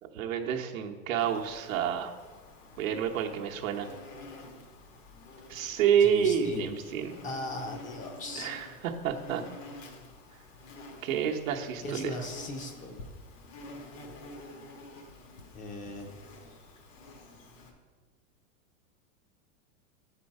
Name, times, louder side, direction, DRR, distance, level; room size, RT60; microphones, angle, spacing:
voice 1, 0.0-2.1 2.8-3.9 5.5-7.2 8.4-9.4 11.0-12.1, right 8 dB, 80° right, 2 dB, 0.9 m, -29 dB
Insect, 1.2-17.7, left 2 dB, 70° left, 1.6 m, -49 dB
voice 2, 6.0-6.9 7.2-8.5 11.8-13.1 15.5-16.1, left 2 dB, 20° left, 4 dB, 0.6 m, -38 dB
6.9 x 4.5 x 5.3 m, 1.4 s
supercardioid pair, 135°, 40 cm